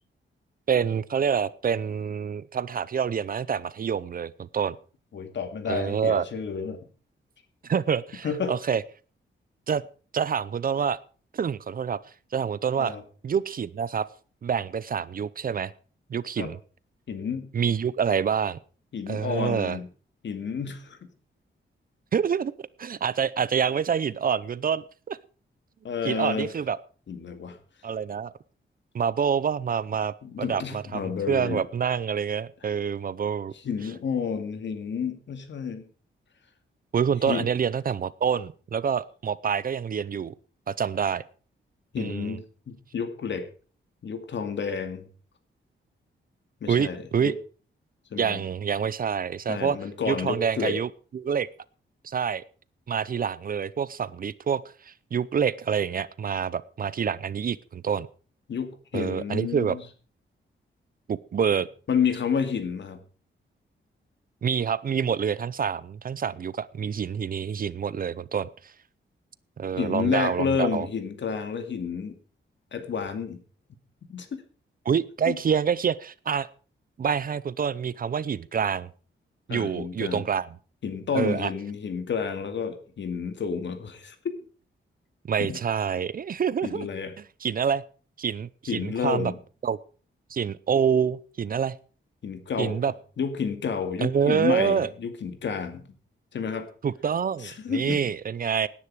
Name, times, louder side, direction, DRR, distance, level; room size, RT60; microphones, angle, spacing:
voice 1, 0.7-4.8 5.7-6.2 7.6-8.8 9.7-9.8 10.1-11.0 11.3-12.0 12.3-13.0 13.2-14.1 14.4-15.7 16.1-16.6 17.5-18.6 19.1-19.8 22.1-22.5 22.8-25.2 26.0-26.8 27.8-28.3 28.9-33.5 36.9-40.3 40.7-41.2 42.0-42.4 46.7-47.3 48.2-49.8 50.1-51.5 52.0-52.4 52.9-58.1 58.9-59.8 61.1-61.7 64.4-68.5 69.6-70.9 74.9-76.5 77.0-78.9 79.5-80.5 81.1-81.5 85.3-86.9 87.4-87.8 88.2-89.3 89.6-89.8 90.3-91.7 92.6-92.9 94.0-94.9 96.8-98.7, right 7 dB, 45° right, 19 dB, 0.6 m, -27 dB
voice 2, 5.1-6.8 8.2-8.5 12.8-13.0 16.4-16.5 17.1-17.5 18.9-19.9 20.2-21.0 25.8-26.5 27.1-27.6 30.2-31.6 33.5-35.8 37.3-37.5 41.9-43.5 44.0-45.0 46.6-47.3 48.1-48.4 49.5-50.8 58.5-59.8 61.9-63.0 69.8-72.1 72.7-73.4 74.1-74.4 75.3-75.4 79.5-80.2 80.8-84.2 85.4-85.6 86.6-87.1 88.7-89.4 92.2-92.7 93.2-95.9 96.3-96.7 97.4-98.1, left 6 dB, 65° left, 8 dB, 2.3 m, -30 dB
18.0 x 10.0 x 4.8 m, 0.39 s
wide cardioid pair, 150°, 20 cm